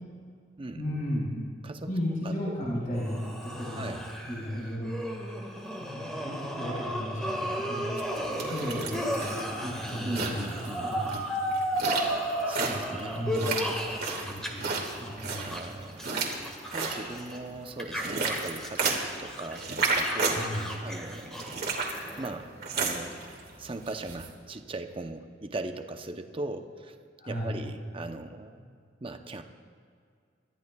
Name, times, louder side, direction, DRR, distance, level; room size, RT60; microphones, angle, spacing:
voice 1, 0.7-1.4 1.9-3.2 3.5-3.8 4.3-5.0 5.9-7.9 8.3-10.5 10.8-11.3 12.7-13.6 14.2-15.5 20.3-20.7 27.2-27.6, equal, 50° left, -7 dB, 4.0 m, -34 dB
voice 2, 2.2-2.7 3.8-4.1 10.0-10.9 12.5-13.3 15.3-16.1 16.7-19.7 20.0-20.5 20.8-21.5 22.2-23.2 23.6-27.0 27.3-29.4, right 2 dB, 30° right, 6 dB, 0.7 m, -39 dB
sound 1, 2.9-14.5 14.7-17.4 17.8-22.3, equal, 5° left, 1.7 m, -34 dB
sound 2, 8.0-24.3, right 4 dB, 60° right, 2.1 m, -34 dB
28.0 x 13.5 x 2.3 m, 2.2 s
head